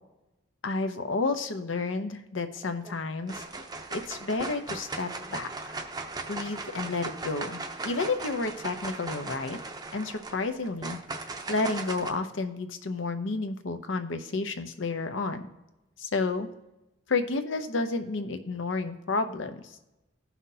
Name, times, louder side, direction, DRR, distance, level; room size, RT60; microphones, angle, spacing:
voice 1, 0.6-3.4 4.1-5.8 6.3-7.6 7.8-9.6 9.9-11.0 11.5-15.5 16.0-16.5 17.1-19.8, left 3 dB, 85° left, 8 dB, 0.8 m, -31 dB
sound 1, 2.6-2.9 3.3-12.1, right 3 dB, 20° right, 0.6 m, -38 dB
15.5 x 5.8 x 2.8 m, 0.95 s
head